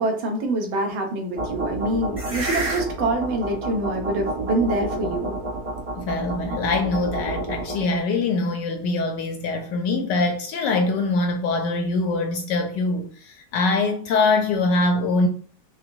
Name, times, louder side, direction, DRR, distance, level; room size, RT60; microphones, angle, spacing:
voice 1, 0.0-5.3, right 2 dB, 75° right, 1.6 m, -25 dB
sound 1, 1.4-8.0, right 2 dB, 30° right, 0.6 m, -29 dB
voice 2, 6.0-15.3, left 3 dB, 75° left, 1.0 m, -23 dB
5.6 x 2.2 x 2.6 m
omnidirectional pair, 2.2 m